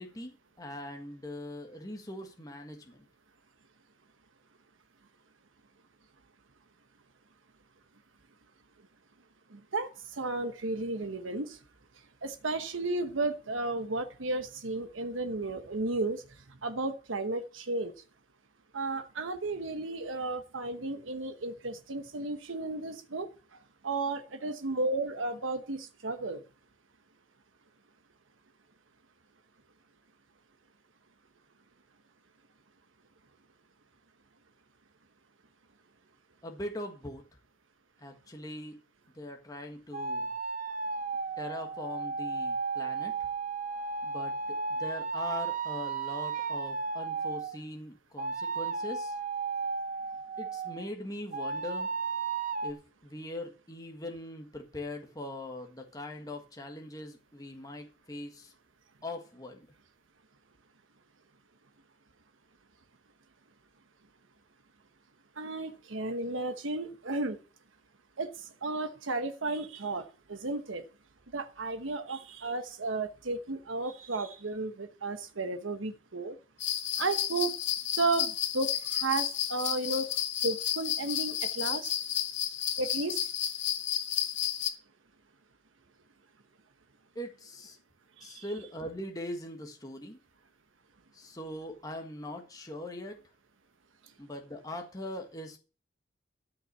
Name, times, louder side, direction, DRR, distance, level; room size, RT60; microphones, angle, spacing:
voice 1, 0.0-3.1 36.4-37.2 38.0-38.8 39.1-40.3 41.4-43.3 44.0-49.2 50.4-51.9 52.6-58.5 59.0-59.7 87.1-87.8 88.2-90.2 91.1-93.2 94.2-95.6, left 1 dB, 20° left, 3 dB, 1.6 m, -41 dB
voice 2, 9.5-11.6 12.2-16.2 16.6-17.9 18.7-23.3 23.8-26.4 65.4-67.4 68.2-70.8 71.3-76.4 77.0-77.6 78.0-80.1 80.4-81.9 82.8-83.2 88.2-88.4, right 2 dB, 85° right, 8 dB, 1.1 m, -33 dB
sound 1, 39.9-47.6 48.2-50.8 51.3-52.7, right 4 dB, 40° right, 0.7 m, -34 dB
sound 2, 76.6-84.7, left 10 dB, 70° left, 1.7 m, -32 dB
13.5 x 5.8 x 6.8 m, 0.36 s
head